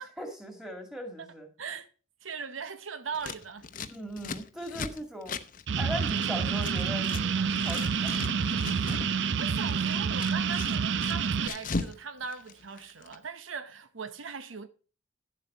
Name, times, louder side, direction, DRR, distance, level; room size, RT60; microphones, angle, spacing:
voice 1, 0.0-1.5 3.9-5.4 5.8-8.4 8.9-9.0, equal, 5° right, 2.2 m, -39 dB
voice 2, 1.6-1.9 2.2-3.7 8.8-14.7, right 5 dB, 90° right, 0.9 m, -40 dB
Scissors, 3.1-7.2 7.5-9.1 9.4-12.0 12.2-13.2, left 4 dB, 45° left, 0.7 m, -38 dB
sound 1, 5.7-11.5, right 6 dB, 65° right, 0.5 m, -28 dB
11.0 x 7.6 x 4.4 m
head